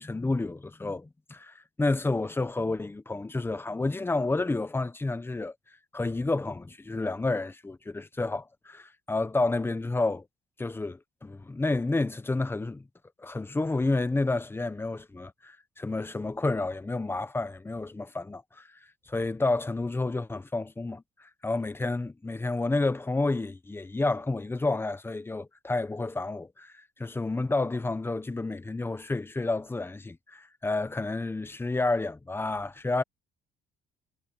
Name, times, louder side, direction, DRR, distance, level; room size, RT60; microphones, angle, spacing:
voice 1, 0.0-5.5 5.9-10.2 10.6-12.8 13.2-18.6 19.1-21.0 21.4-26.7 27.0-33.0, left 2 dB, 15° left, 1.3 m, -30 dB
cardioid pair, 110°, 17 cm